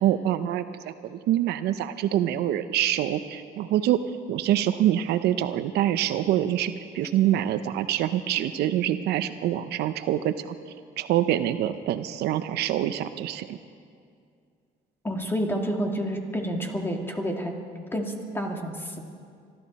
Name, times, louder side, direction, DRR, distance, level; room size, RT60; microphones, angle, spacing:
voice 1, 0.0-4.0 4.3-10.5 11.0-13.6, right 12 dB, 80° right, 11 dB, 0.7 m, -25 dB
voice 2, 15.0-17.5 17.9-19.0, equal, 15° left, 2 dB, 2.0 m, -29 dB
24.5 x 13.0 x 4.2 m, 2.3 s
cardioid pair, 110°, 17 cm